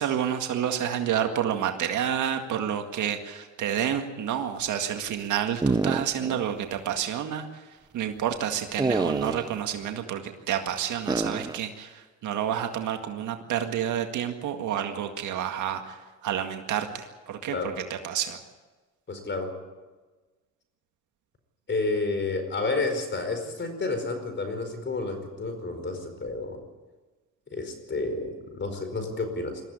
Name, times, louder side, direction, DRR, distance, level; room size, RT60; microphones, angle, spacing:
voice 1, 0.0-7.5 7.9-10.2 10.5-16.0 16.2-17.7 18.0-18.4, right 9 dB, 80° right, 5 dB, 2.0 m, -29 dB
sound 1, 5.6-6.4 6.8-6.9 8.8-9.6 11.1-11.6, right 3 dB, 15° right, 0.8 m, -27 dB
voice 2, 19.1-19.5 21.7-26.6 27.5-29.6, left 3 dB, 40° left, 7 dB, 4.7 m, -30 dB
21.0 x 14.5 x 9.9 m, 1.3 s
cardioid pair, 90°, 30 cm